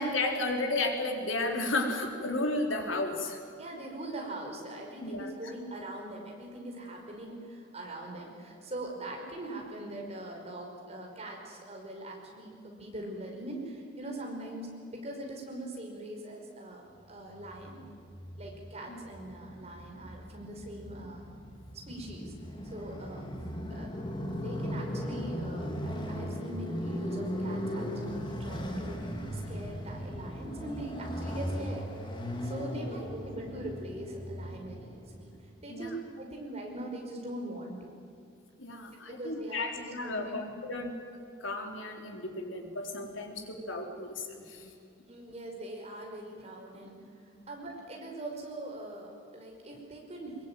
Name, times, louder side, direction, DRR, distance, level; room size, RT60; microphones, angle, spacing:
voice 1, 0.0-3.4 5.0-5.5 18.9-19.3 32.8-33.0 35.7-36.0 38.6-40.9 41.4-44.7 47.3-47.5, left 2 dB, 80° left, 3 dB, 3.8 m, -33 dB
voice 2, 3.6-17.8 18.4-21.2 21.9-22.3 22.6-23.4 23.7-23.9 24.3-29.0 29.3-31.8 32.4-35.3 35.6-35.9 36.2-38.0 39.1-40.6 45.1-46.9 47.5-50.5, right 1 dB, 35° right, 0 dB, 5.4 m, -42 dB
Motorcycle, 17.3-35.4, equal, 25° left, 2.8 m, -38 dB
22.5 x 22.0 x 9.2 m, 2.4 s
head